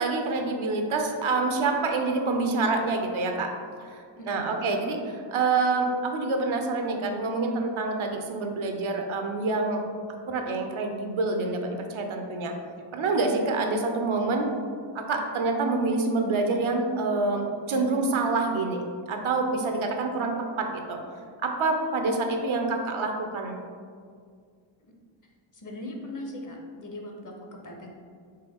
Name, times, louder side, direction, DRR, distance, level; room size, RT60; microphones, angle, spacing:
voice 1, 0.0-3.5 3.8-9.8 10.3-12.5 12.9-14.5 14.9-21.0 21.4-23.6, right 3 dB, 75° right, 4 dB, 0.7 m, -27 dB
voice 2, 4.2-4.7 24.8-24.9 25.5-28.0, left 1 dB, 40° left, 1 dB, 0.8 m, -40 dB
4.6 x 2.8 x 3.5 m, 2.1 s
cardioid pair, 60°, 49 cm